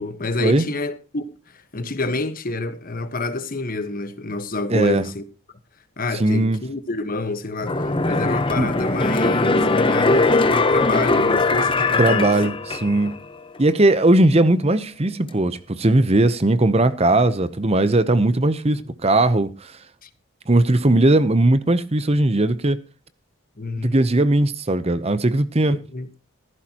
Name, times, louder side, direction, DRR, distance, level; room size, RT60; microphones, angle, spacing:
voice 1, 0.0-1.4 1.7-5.2 6.0-12.4 20.0-20.1 23.6-23.9 25.7-26.1, left 2 dB, 40° left, 1.3 m, -28 dB
voice 2, 4.7-5.0 6.1-6.6 8.6-8.7 12.0-12.5 12.8-13.1 13.6-19.8 20.5-22.8 23.8-25.8, right 2 dB, 25° right, 0.7 m, -18 dB
sound 1, 7.6-13.2 13.6-13.7, left 3 dB, 25° left, 0.9 m, -20 dB
16.0 x 14.5 x 2.9 m
head